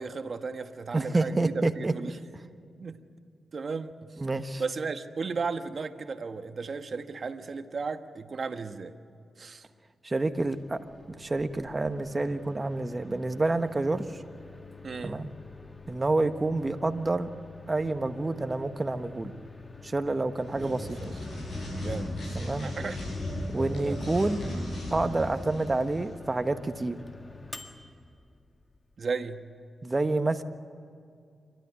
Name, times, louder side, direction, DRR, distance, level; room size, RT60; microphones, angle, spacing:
voice 1, 0.0-2.2 2.8-3.0 3.5-4.2 4.6-8.9 9.4-9.6 14.8-15.3 20.6-21.2 21.8-22.1 22.6-23.0 23.6-24.0 29.0-29.4, right 4 dB, 60° right, 8 dB, 1.3 m, -35 dB
voice 2, 0.9-1.9 4.2-4.6 10.0-10.8 11.2-14.1 15.0-15.3 15.9-17.3 17.7-19.3 19.8-21.0 22.3-22.6 23.5-24.4 24.9-27.0 29.8-30.4, right 2 dB, 30° right, 8 dB, 1.4 m, -28 dB
Microwave oven, 10.4-29.1, left 4 dB, 30° left, 1.8 m, -48 dB
sound 1, 20.4-26.1, left 1 dB, 60° left, 8.0 m, -36 dB
28.5 x 13.0 x 9.7 m, 2.4 s
cardioid pair, 50°, 0 cm